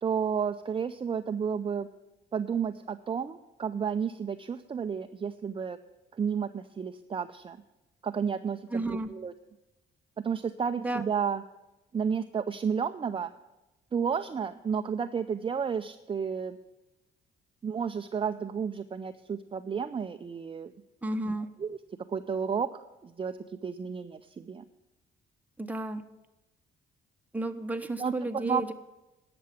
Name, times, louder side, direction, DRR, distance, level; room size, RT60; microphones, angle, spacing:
voice 1, 0.0-1.9 2.3-5.8 6.2-7.6 8.0-9.3 10.2-11.4 11.9-13.3 13.9-16.6 17.6-20.7 21.3-21.4 21.6-21.8 22.1-22.7 23.0-23.4 23.6-24.6 28.0-28.7, right 6 dB, 25° right, 8 dB, 0.5 m, -31 dB
voice 2, 8.7-9.1 10.8-11.0 21.0-21.5 25.6-26.1 27.3-28.7, right 1 dB, 10° right, 6 dB, 1.0 m, -32 dB
11.0 x 6.9 x 8.3 m, 1.0 s
cardioid pair, 90°, 20 cm